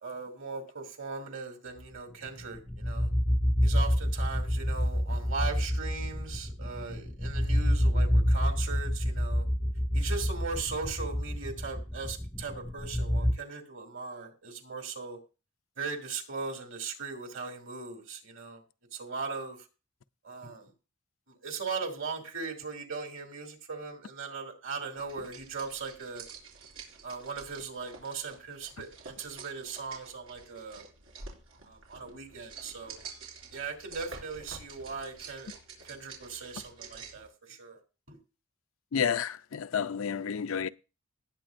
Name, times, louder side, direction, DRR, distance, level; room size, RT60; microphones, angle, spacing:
voice 1, 0.0-3.1 3.6-9.4 9.9-15.2 15.8-18.6 18.9-19.6 20.2-20.7 21.4-26.2 27.0-30.8 31.7-33.0 33.5-35.5 35.8-37.8 38.1-38.2, right 4 dB, 65° right, 2.8 m, -39 dB
sound 1, 2.3-13.3, equal, 5° left, 0.5 m, -28 dB
sound 2, 25.0-37.3, right 4 dB, 90° right, 4.2 m, -48 dB
voice 2, 38.9-40.7, left 7 dB, 80° left, 0.5 m, -30 dB
19.0 x 8.2 x 2.6 m
head